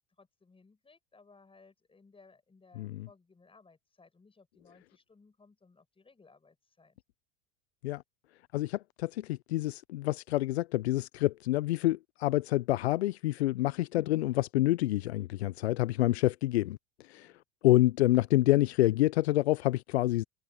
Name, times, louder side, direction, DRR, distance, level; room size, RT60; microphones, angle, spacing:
voice 1, 0.2-7.0 17.1-17.4, left 4 dB, 15° left, 6.3 m, -61 dB
voice 2, 2.8-3.1 7.8-8.0 8.5-16.8 17.1-17.3 17.6-20.2, left 16 dB, 75° left, 0.7 m, -27 dB
hypercardioid pair, 80°, 32 cm